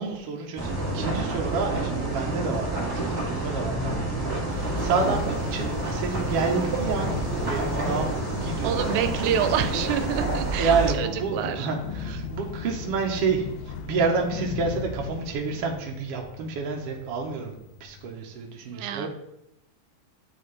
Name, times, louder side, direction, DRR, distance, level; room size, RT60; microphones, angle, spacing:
voice 1, 0.0-7.1 7.5-9.4 10.6-19.1, right 4 dB, 65° right, 0 dB, 1.6 m, -29 dB
sound 1, 0.6-10.9, right 2 dB, 25° right, 1.3 m, -28 dB
sound 2, 4.5-18.1, left 6 dB, 85° left, 2.0 m, -37 dB
voice 2, 8.6-11.7 18.7-19.1, right 9 dB, 90° right, 8 dB, 2.0 m, -27 dB
9.3 x 4.2 x 3.2 m, 0.83 s
omnidirectional pair, 3.3 m